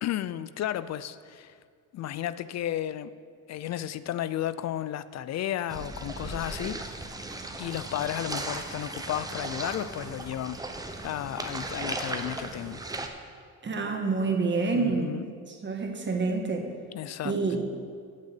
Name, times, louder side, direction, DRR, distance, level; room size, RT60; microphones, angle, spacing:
voice 1, 0.0-1.5 1.9-3.1 3.5-6.8 7.6-10.6 11.0-12.8 14.7-15.3 16.9-17.4, left 11 dB, 55° left, 15 dB, 0.4 m, -33 dB
sound 1, 5.7-13.1, right 2 dB, 10° right, 0.8 m, -37 dB
voice 2, 13.6-15.1 15.5-16.7 17.2-17.6, right 4 dB, 35° right, 3 dB, 1.5 m, -28 dB
8.4 x 6.5 x 8.3 m, 2.1 s
cardioid pair, 105°, 33 cm